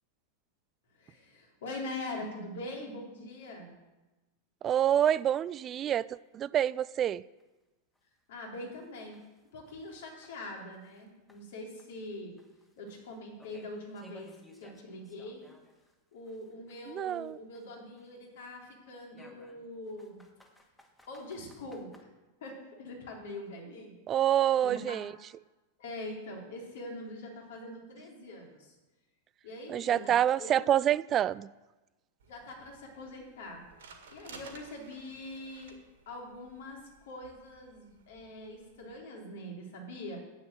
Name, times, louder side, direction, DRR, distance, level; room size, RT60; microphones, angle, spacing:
voice 1, 1.0-3.7 8.3-9.2 9.5-12.3 12.8-14.3 14.6-15.4 16.1-20.2 21.1-22.1 22.4-24.0 24.6-25.0 25.8-28.7 29.4-30.7 32.3-33.6 34.1-35.8 36.1-40.2, left 1 dB, 55° left, 3.6 m, -43 dB
voice 2, 4.6-7.2 16.9-17.4 24.1-25.1 29.7-31.5, right 10 dB, 30° right, 0.3 m, -27 dB
sound 1, 5.2-5.3 5.7-5.8 6.2-6.3 6.8-6.9 7.4-7.5 7.9-8.0 8.5-11.0 11.3-15.9 16.2-18.3 19.1-22.0, left 1 dB, 5° left, 1.8 m, -60 dB
sound 2, 32.2-39.0, right 5 dB, 60° right, 1.9 m, -56 dB
10.0 x 8.8 x 7.8 m
figure-of-eight pair, 90°, 0 cm